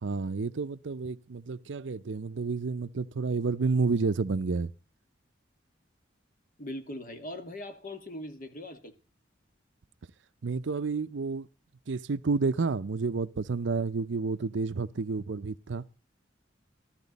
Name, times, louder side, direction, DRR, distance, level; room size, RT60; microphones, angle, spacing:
voice 1, 0.0-4.7 10.4-11.5 11.9-15.8, right 4 dB, 80° right, 0.6 m, -30 dB
voice 2, 6.6-8.9, left 1 dB, 50° left, 1.8 m, -40 dB
14.5 x 13.5 x 4.0 m
head